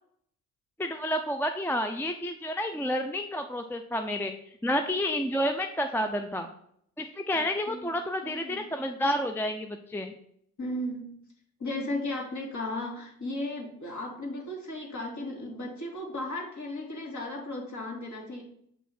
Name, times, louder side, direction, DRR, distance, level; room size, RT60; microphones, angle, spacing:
voice 1, 0.8-4.3 4.6-6.5 7.0-10.1, equal, 5° left, 6 dB, 0.6 m, -30 dB
voice 2, 8.2-8.6 10.6-11.1 11.6-18.4, left 1 dB, 40° left, 0 dB, 2.8 m, -35 dB
7.3 x 5.5 x 4.3 m, 0.68 s
figure-of-eight pair, 45°, 44 cm